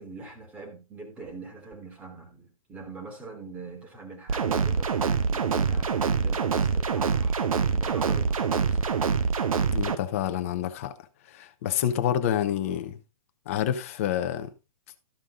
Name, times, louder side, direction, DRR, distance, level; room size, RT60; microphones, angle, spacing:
voice 1, 0.0-7.4 7.7-9.0, right 3 dB, 10° right, 1.3 m, -43 dB
sound 1, 4.3-10.0, right 5 dB, 80° right, 1.2 m, -25 dB
voice 2, 9.7-10.9 11.3-13.0 13.5-14.5, left 10 dB, 25° left, 0.7 m, -28 dB
13.0 x 5.2 x 3.7 m
hypercardioid pair, 180°, 18 cm